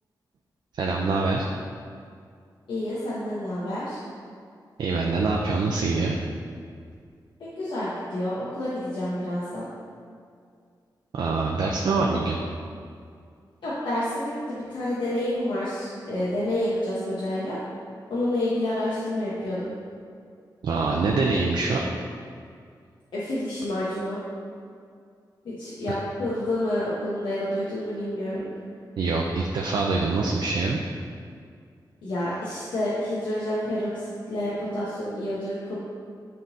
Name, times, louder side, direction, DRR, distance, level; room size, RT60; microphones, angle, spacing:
voice 1, 0.7-1.5 4.8-6.2 11.2-12.4 20.6-21.8 29.0-30.8, right 3 dB, 75° right, -1 dB, 0.5 m, -24 dB
voice 2, 2.7-4.0 7.4-9.7 13.6-17.6 18.1-19.7 23.1-24.2 25.4-28.4 32.0-35.8, left 1 dB, 85° left, -9 dB, 1.0 m, -29 dB
9.4 x 3.8 x 2.7 m, 2.2 s
wide cardioid pair, 165°, 8 cm